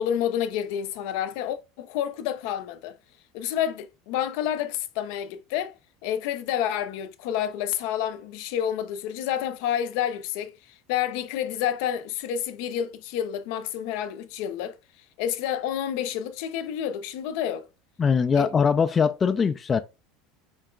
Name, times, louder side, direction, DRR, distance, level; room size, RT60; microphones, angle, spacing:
voice 1, 0.0-3.0 3.3-5.7 6.0-10.6 10.9-14.8 15.2-17.7 18.4-18.5, left 10 dB, 70° left, 0.5 m, -29 dB
voice 2, 18.0-19.8, left 6 dB, 20° left, 0.3 m, -21 dB
4.6 x 2.2 x 3.8 m
supercardioid pair, 140°, 0 cm